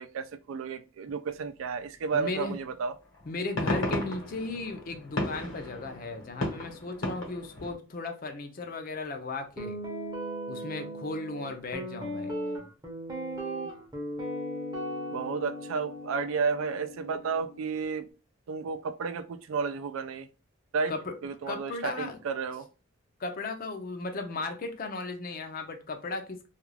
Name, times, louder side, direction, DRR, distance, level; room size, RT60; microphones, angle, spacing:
voice 1, 0.0-2.9 15.1-18.1 18.5-20.3 20.7-20.9 21.2-22.7, right 5 dB, 80° right, 0.3 m, -32 dB
voice 2, 2.1-2.6 3.3-9.8 10.5-12.3 20.9-21.1 21.5-22.2 23.2-26.4, left 3 dB, 45° left, 0.5 m, -36 dB
sound 1, 2.5-2.6 3.1-7.7, left 1 dB, 70° left, 1.0 m, -34 dB
Guitar, 9.6-17.8, equal, 20° right, 0.6 m, -37 dB
2.4 x 2.3 x 3.1 m
head